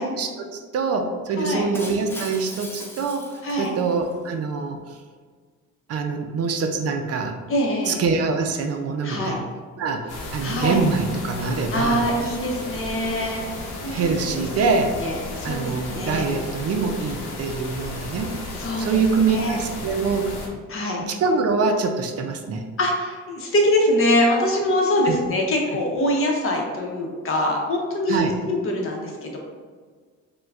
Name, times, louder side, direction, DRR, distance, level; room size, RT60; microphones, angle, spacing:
voice 1, 0.0-3.3 3.6-4.8 5.9-7.4 7.8-9.4 9.8-12.1 13.9-15.0 15.4-18.3 18.8-20.3 21.0-22.7 25.0-25.2 28.1-28.4, right 4 dB, 55° right, 4 dB, 0.4 m, -24 dB
voice 2, 1.4-1.7 3.4-3.7 7.5-8.0 9.0-9.4 10.4-10.8 11.7-13.5 13.8-14.2 14.9-16.3 18.5-19.0 19.3-19.6 20.7-21.0 22.8-29.4, left 1 dB, 45° left, -1 dB, 0.8 m, -23 dB
Shatter, 1.7-4.1, left 1 dB, 10° left, 0.4 m, -38 dB
sound 1, 10.1-20.5, left 2 dB, 90° left, 0.7 m, -34 dB
4.4 x 2.2 x 2.4 m, 1.5 s
cardioid pair, 90°, 30 cm